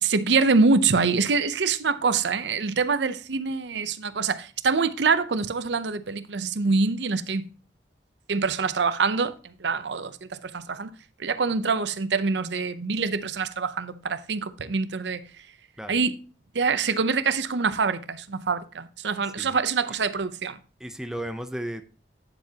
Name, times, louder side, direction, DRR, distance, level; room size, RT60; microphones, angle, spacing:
voice 1, 0.0-7.5 8.3-10.9 11.2-15.2 15.9-16.2 16.5-20.6, right 4 dB, 80° right, 0.7 m, -25 dB
voice 2, 20.8-21.8, right 1 dB, 5° right, 0.6 m, -34 dB
9.6 x 7.4 x 2.9 m
head